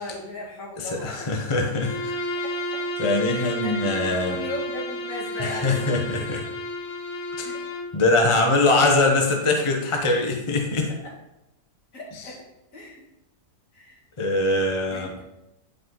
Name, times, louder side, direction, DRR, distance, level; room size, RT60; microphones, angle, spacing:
voice 1, 0.0-1.3 2.4-2.5 3.3-6.4 7.4-7.6 11.9-12.4 12.7-13.0 13.7-14.0 14.9-15.2, left 1 dB, 50° left, -4 dB, 2.5 m, -37 dB
voice 2, 0.8-2.2 3.0-4.4 5.4-6.4 7.4-7.5 7.9-10.9 14.2-15.2, left 2 dB, 30° left, 2 dB, 0.6 m, -22 dB
Bowed string instrument, 1.8-7.9, equal, 80° left, 1.6 m, -31 dB
10.0 x 5.2 x 3.9 m, 0.93 s
omnidirectional pair, 1.8 m